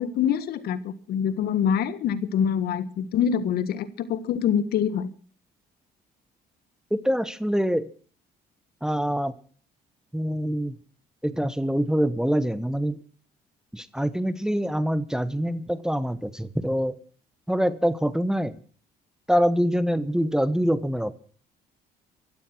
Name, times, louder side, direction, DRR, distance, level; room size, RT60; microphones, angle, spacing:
voice 1, 0.0-5.1, left 8 dB, 70° left, 15 dB, 1.6 m, -25 dB
voice 2, 6.9-7.9 8.8-9.3 10.1-10.8 11.2-13.0 13.7-17.0 17.5-18.6 19.3-21.1, equal, 5° right, 15 dB, 1.1 m, -25 dB
16.0 x 13.5 x 6.2 m, 0.43 s
cardioid pair, 110°, 17 cm